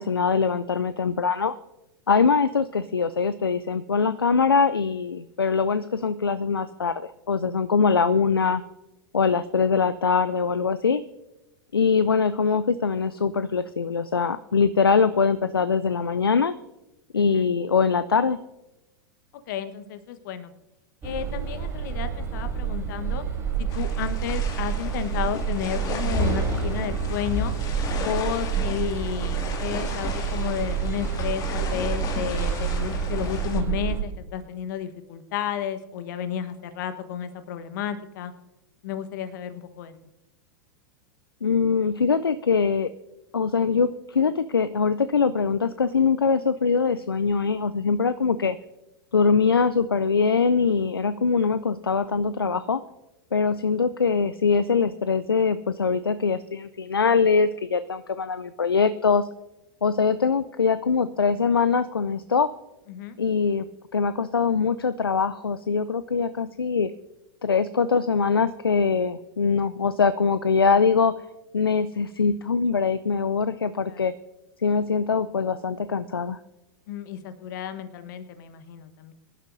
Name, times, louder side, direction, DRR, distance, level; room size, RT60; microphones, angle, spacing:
voice 1, 0.0-1.5 2.1-8.6 9.1-11.0 11.7-16.5 17.1-18.4 41.4-42.9 43.3-48.6 49.1-52.8 53.3-59.3 59.8-62.5 63.2-63.7 63.9-66.9 67.4-71.1 71.5-74.1 74.6-76.4, left 5 dB, 85° left, 14 dB, 0.4 m, -23 dB
voice 2, 17.1-17.5 19.5-20.5 21.0-23.2 23.6-27.5 28.0-38.3 38.8-39.9 62.9-63.2 73.9-74.1 76.9-79.1, left 9 dB, 55° left, 10 dB, 1.2 m, -32 dB
sound 1, 21.0-34.0, right 6 dB, 25° right, 3.6 m, -28 dB
sound 2, 23.7-33.6, left 4 dB, 30° left, 2.2 m, -36 dB
23.0 x 11.5 x 2.7 m, 0.96 s
figure-of-eight pair, 95°, 12 cm